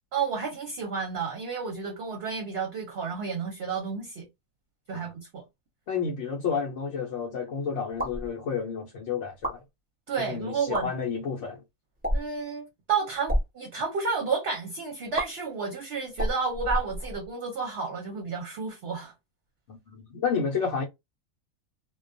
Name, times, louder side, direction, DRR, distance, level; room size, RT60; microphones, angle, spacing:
voice 1, 0.1-4.2 4.9-5.4 10.1-10.9 12.1-19.1, right 5 dB, 60° right, 0.8 m, -31 dB
voice 2, 5.9-9.6 10.3-11.6 19.7-20.8, left 6 dB, 65° left, 0.9 m, -30 dB
sound 1, 7.9-8.3 9.3-9.6 10.6-10.8 12.0-12.4 13.1-13.5 15.1-15.3 16.1-17.3, equal, 5° right, 1.0 m, -29 dB
2.2 x 2.2 x 2.5 m
omnidirectional pair, 1.4 m